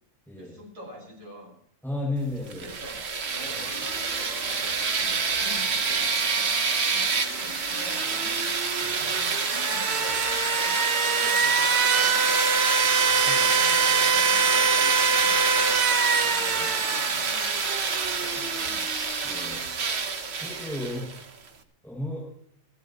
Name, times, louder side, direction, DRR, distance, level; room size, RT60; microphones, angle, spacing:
voice 1, 0.3-1.5 2.5-6.5 6.9-8.5 8.9-10.8 11.0-12.4 13.2-16.1 16.6-17.3 18.0-19.0, equal, 80° right, -1 dB, 6.2 m, -46 dB
voice 2, 1.8-2.6 8.9-9.0 12.8-13.4 16.2-16.7 19.2-19.6 20.3-21.1 21.8-22.3, left 1 dB, ahead, -5 dB, 6.8 m, -34 dB
sound 1, 2.5-21.2, right 5 dB, 50° right, 1.4 m, -24 dB
Domestic sounds home sounds, 2.8-21.1, left 2 dB, 45° left, 2.3 m, -44 dB
29.0 x 12.0 x 3.0 m, 0.68 s
omnidirectional pair, 1.4 m